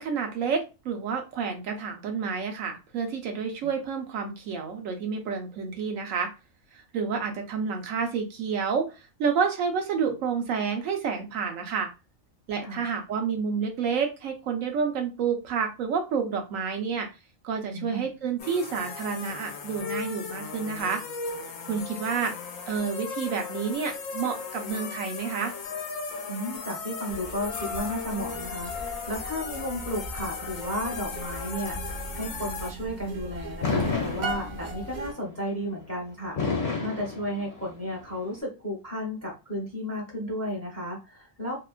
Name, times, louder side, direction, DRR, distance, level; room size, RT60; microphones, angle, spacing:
voice 1, 0.0-6.3 6.9-8.9 9.2-11.9 12.5-17.1 17.4-21.0 21.7-22.3 22.7-25.5, right 6 dB, 80° right, 4 dB, 1.1 m, -29 dB
voice 2, 17.7-18.1 26.3-41.5, equal, 15° left, -1 dB, 0.6 m, -33 dB
sound 1, 18.4-32.7, left 5 dB, 85° left, 1.0 m, -37 dB
sound 2, 27.1-35.1, right 2 dB, 55° right, 0.5 m, -39 dB
Fireworks, 33.6-34.9 36.4-37.9, left 4 dB, 55° left, 1.0 m, -29 dB
2.8 x 2.2 x 2.4 m, 0.28 s
omnidirectional pair, 1.3 m